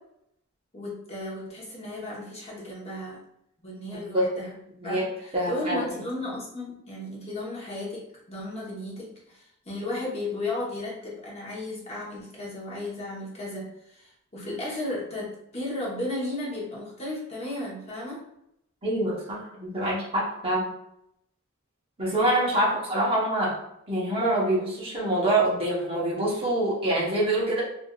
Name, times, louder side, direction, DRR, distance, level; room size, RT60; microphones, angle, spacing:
voice 1, 0.7-3.2 3.6-4.5 4.8-18.2, left 1 dB, 30° left, -5 dB, 0.9 m, -34 dB
voice 2, 3.9-4.3 4.8-5.1 5.3-5.9 18.8-20.7 22.0-23.5 23.9-27.6, right 1 dB, 25° right, -6 dB, 0.9 m, -25 dB
3.4 x 2.5 x 2.3 m, 0.78 s
head